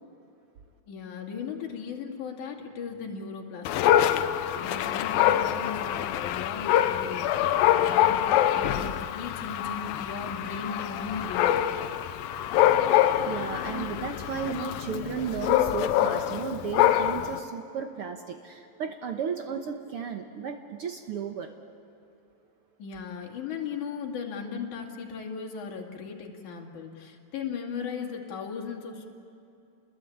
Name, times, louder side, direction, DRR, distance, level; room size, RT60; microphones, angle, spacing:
voice 1, 0.9-11.7 22.8-29.1, left 6 dB, 60° left, 1 dB, 3.7 m, -37 dB
Dog, 3.7-17.4, left 11 dB, 85° left, 2.6 m, -25 dB
voice 2, 13.2-21.5, right 6 dB, 75° right, 5 dB, 1.3 m, -34 dB
29.0 x 21.0 x 8.6 m, 2.6 s
omnidirectional pair, 4.0 m